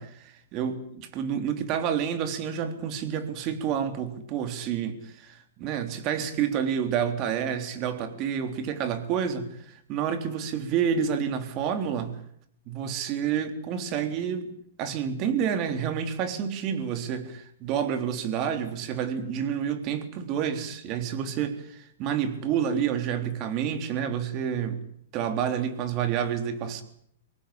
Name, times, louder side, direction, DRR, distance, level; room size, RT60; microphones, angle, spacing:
voice 1, 0.0-12.2 12.7-14.5 14.8-24.8 25.1-26.8, right 8 dB, 35° right, 8 dB, 3.5 m, -29 dB
24.0 x 18.5 x 8.7 m, 0.68 s
hypercardioid pair, 140°, 0 cm